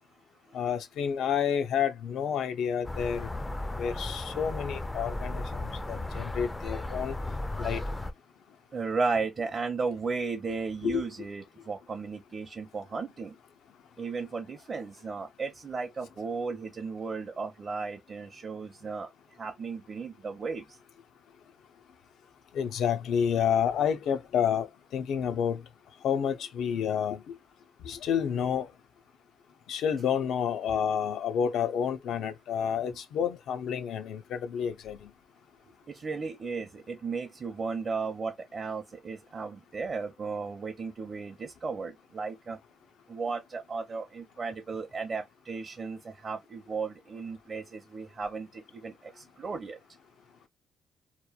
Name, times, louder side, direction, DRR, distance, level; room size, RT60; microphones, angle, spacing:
voice 1, 0.5-3.3 3.8-5.4 5.9-7.2 7.6-7.8 10.8-11.0 22.5-24.7 24.9-25.6 26.0-27.3 27.8-28.7 29.7-35.1, left 8 dB, 75° left, 0.5 m, -29 dB
sound 1, 2.8-8.1, left 2 dB, 15° left, 0.4 m, -35 dB
voice 2, 8.7-13.3 14.0-19.1 19.4-20.7 35.6-42.6 43.1-49.8, right 4 dB, 40° right, 0.6 m, -35 dB
2.9 x 2.2 x 2.3 m
cardioid pair, 90°, 0 cm